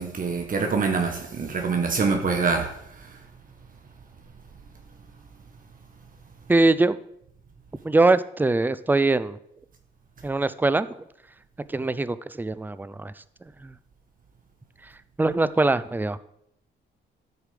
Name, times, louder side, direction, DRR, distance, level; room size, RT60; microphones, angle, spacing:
voice 1, 0.0-2.7, right 4 dB, 45° right, 1.3 m, -25 dB
voice 2, 6.5-7.0 7.8-9.4 10.2-10.9 11.7-13.1 13.6-13.7 15.2-16.2, right 2 dB, 10° right, 0.5 m, -22 dB
13.0 x 5.0 x 5.0 m
cardioid pair, 90°, 20 cm